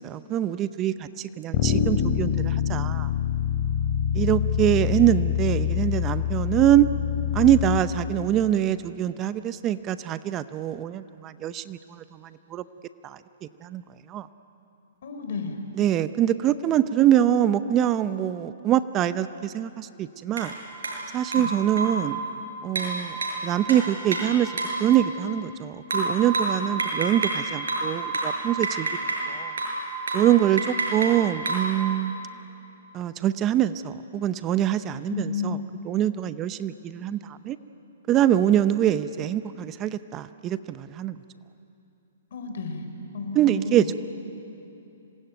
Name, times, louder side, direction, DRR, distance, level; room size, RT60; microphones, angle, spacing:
voice 1, 0.0-3.1 4.1-6.9 7.3-12.6 13.0-13.2 13.6-13.8 14.1-14.3 15.7-20.5 21.1-22.2 22.6-23.2 23.4-24.5 24.8-28.9 29.3-29.5 30.1-32.2 32.9-35.6 35.9-37.6 38.1-41.2 43.3-43.9, right 11 dB, 25° right, 13 dB, 0.7 m, -24 dB
Bass guitar, 1.5-7.8, left 9 dB, 35° left, 3.8 m, -25 dB
voice 2, 15.0-15.6 21.3-21.5 35.1-35.7 42.3-42.8 43.1-43.9, left 5 dB, 65° left, 6 dB, 4.1 m, -32 dB
sound 1, 20.4-20.5 20.8-21.0 21.3-22.1 22.8-24.8 25.9-27.4 27.7-29.3 29.6-29.8 30.1-30.3 30.6-31.7, right 2 dB, 85° right, 6.9 m, -28 dB
26.5 x 20.5 x 9.2 m, 2.9 s
hypercardioid pair, 140°, 0 cm